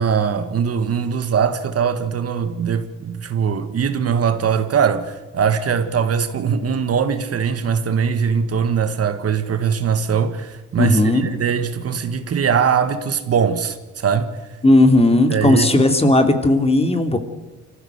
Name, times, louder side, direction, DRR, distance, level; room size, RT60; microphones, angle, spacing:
voice 1, 0.0-14.3 15.3-15.7, right 7 dB, 50° right, 1.7 m, -21 dB
voice 2, 10.8-11.3 14.6-17.2, left 2 dB, 20° left, 2.8 m, -15 dB
25.0 x 15.0 x 8.0 m
cardioid pair, 90°, 30 cm